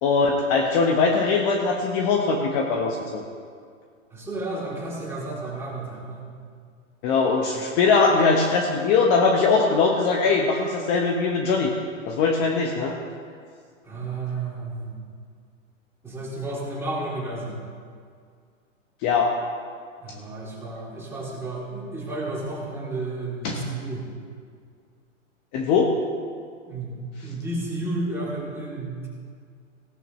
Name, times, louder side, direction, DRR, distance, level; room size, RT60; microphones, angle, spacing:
voice 1, 0.0-3.2 7.0-11.7 12.1-12.9 19.0-19.3 23.4-23.6 25.5-25.9, left 4 dB, 35° left, 2 dB, 1.0 m, -21 dB
voice 2, 4.1-6.2 13.8-14.9 16.0-17.6 20.0-24.1 26.7-29.1, right 2 dB, 5° right, -5 dB, 2.9 m, -32 dB
17.0 x 12.0 x 3.1 m, 2.1 s
hypercardioid pair, 135°, 39 cm